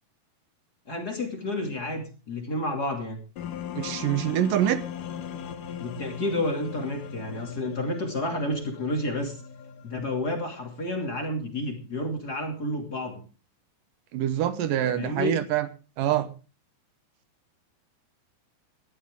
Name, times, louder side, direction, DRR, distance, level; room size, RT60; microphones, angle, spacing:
voice 1, 0.9-3.2 5.8-9.4 9.8-13.2 14.9-15.4, left 1 dB, 30° left, 2.9 m, -30 dB
sound 1, 3.4-10.4, left 8 dB, 65° left, 2.9 m, -38 dB
voice 2, 3.8-4.8 14.1-15.7 16.0-16.3, right 11 dB, 75° right, 2.6 m, -25 dB
19.5 x 13.0 x 3.7 m
omnidirectional pair, 4.1 m